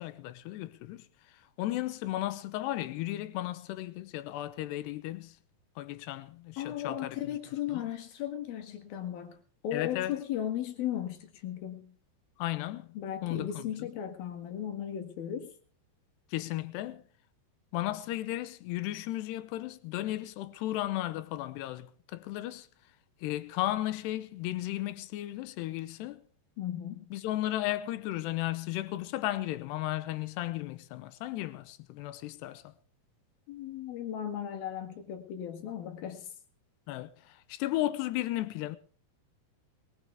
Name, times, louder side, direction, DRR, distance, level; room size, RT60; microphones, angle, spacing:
voice 1, 0.0-5.4 5.8-7.3 7.7-7.9 9.7-10.2 12.4-12.9 13.2-13.9 16.3-17.0 17.7-22.7 23.2-26.2 27.1-32.7 36.9-38.8, left 15 dB, 85° left, 3.0 m, -35 dB
voice 2, 6.6-9.4 9.6-12.0 13.0-15.5 26.6-27.1 33.5-36.3, left 10 dB, 65° left, 3.6 m, -36 dB
21.0 x 16.0 x 3.5 m
omnidirectional pair, 4.7 m